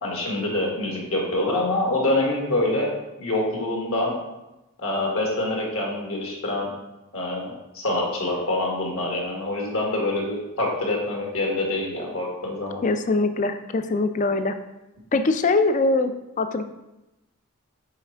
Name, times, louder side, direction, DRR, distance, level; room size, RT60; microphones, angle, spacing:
voice 1, 0.0-2.9 3.2-4.1 4.8-6.7 7.1-12.8, left 2 dB, 65° left, -1 dB, 1.6 m, -25 dB
voice 2, 12.8-14.5 15.1-16.6, left 3 dB, 35° left, 9 dB, 0.4 m, -22 dB
5.7 x 4.1 x 4.4 m, 0.97 s
head